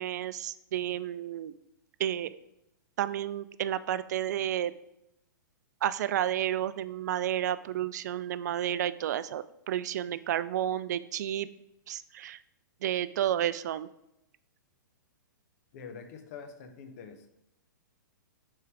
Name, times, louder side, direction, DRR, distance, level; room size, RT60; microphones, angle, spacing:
voice 1, 0.0-1.5 2.0-2.3 3.0-4.7 5.8-11.5 11.9-12.4 12.8-13.9, right 11 dB, 60° right, 15 dB, 0.3 m, -31 dB
voice 2, 15.7-17.3, left 6 dB, 50° left, 7 dB, 0.9 m, -45 dB
5.5 x 3.8 x 4.7 m, 0.83 s
hypercardioid pair, 115°, 11 cm